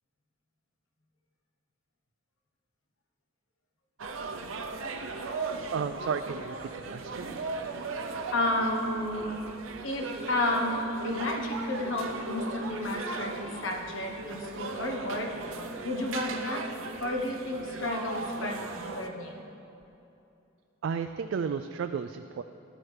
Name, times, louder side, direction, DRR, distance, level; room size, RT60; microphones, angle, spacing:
sound 1, 4.0-19.1, right 3 dB, 90° right, 0.7 m, -38 dB
voice 1, 5.7-7.3 20.8-22.4, right 6 dB, 70° right, 8 dB, 0.3 m, -33 dB
voice 2, 8.3-9.4 9.8-15.3 15.8-16.7 17.0-19.5, left 1 dB, 80° left, 1 dB, 1.1 m, -31 dB
14.0 x 11.5 x 3.3 m, 2.8 s
head